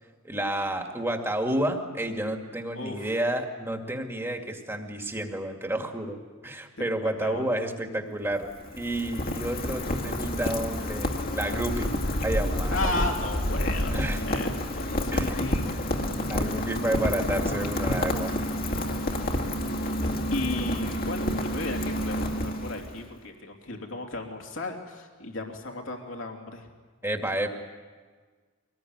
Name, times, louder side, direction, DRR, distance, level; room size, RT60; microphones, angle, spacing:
voice 1, 0.2-6.2 6.4-11.9 12.2-13.1 13.9-14.4 15.1-15.3 16.2-18.4 27.0-27.5, right 1 dB, 10° right, 3 dB, 2.2 m, -30 dB
voice 2, 2.7-3.1 6.8-7.4 12.7-16.0 20.3-26.7, left 2 dB, 70° left, 2 dB, 3.1 m, -35 dB
Rain, 8.2-23.0, left 1 dB, 45° left, 2.2 m, -29 dB
24.0 x 19.5 x 9.6 m, 1.5 s
head